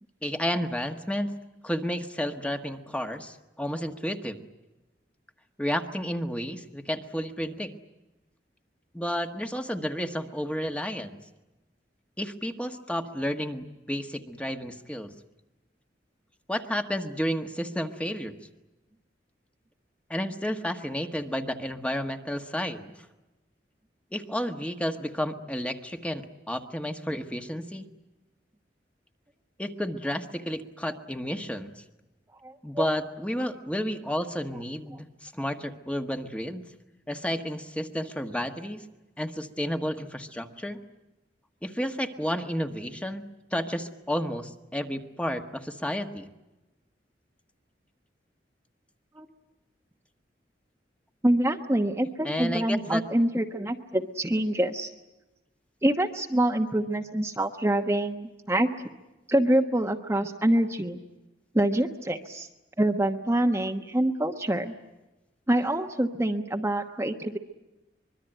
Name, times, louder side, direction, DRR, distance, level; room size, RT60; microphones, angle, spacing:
voice 1, 0.2-1.3 1.6-4.4 5.6-7.7 8.9-11.2 12.2-15.1 16.5-18.4 20.1-22.9 24.1-27.8 29.6-31.7 32.6-36.6 37.1-38.8 39.2-40.8 41.6-43.2 43.5-46.3 52.2-53.0, equal, 5° left, 6 dB, 1.4 m, -31 dB
voice 2, 32.4-32.9 49.1-49.3 51.2-54.9 55.8-58.7 59.3-61.0 61.5-62.5 62.8-64.7 65.5-67.4, right 1 dB, 15° right, 3 dB, 1.1 m, -26 dB
25.0 x 22.5 x 9.0 m, 1.0 s
head